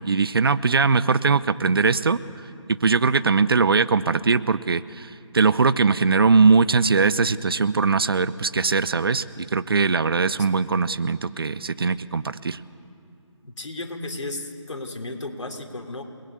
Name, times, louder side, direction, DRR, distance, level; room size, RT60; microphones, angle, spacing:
voice 1, 0.0-2.2 2.8-12.6, right 4 dB, 50° right, 16 dB, 0.7 m, -21 dB
voice 2, 13.4-16.0, left 2 dB, 70° left, 3 dB, 3.7 m, -34 dB
29.0 x 20.0 x 8.3 m, 2.5 s
figure-of-eight pair, 160°, 16 cm